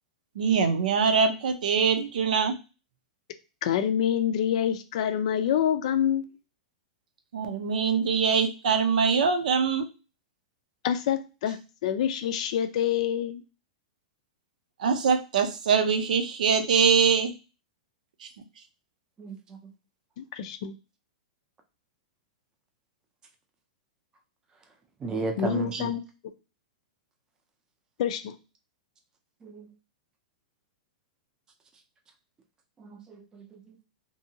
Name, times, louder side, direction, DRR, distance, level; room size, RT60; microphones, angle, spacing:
voice 1, 0.4-2.5 7.3-9.9 14.8-17.3, right 6 dB, 85° right, 6 dB, 0.6 m, -23 dB
voice 2, 3.6-6.4 10.8-13.4 20.2-20.7 25.4-26.0 28.0-28.4, left 9 dB, 60° left, 10 dB, 0.4 m, -27 dB
voice 3, 25.0-25.9 29.4-29.7 32.8-33.8, right 3 dB, 15° right, 4 dB, 0.5 m, -34 dB
2.8 x 2.6 x 2.7 m, 0.31 s
hypercardioid pair, 150°, 4 cm